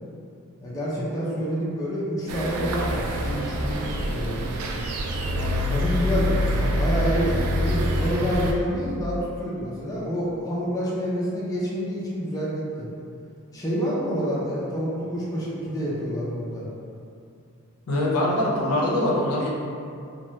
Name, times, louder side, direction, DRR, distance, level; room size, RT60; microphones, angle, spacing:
voice 1, 0.6-4.5 5.4-12.8 13.5-16.7, equal, 15° left, -7 dB, 0.5 m, -28 dB
sound 1, 2.3-8.5, equal, 70° right, 0.3 m, -26 dB
voice 2, 17.9-19.5, left 1 dB, 85° left, -4 dB, 0.6 m, -23 dB
2.9 x 2.2 x 3.0 m, 2.5 s
head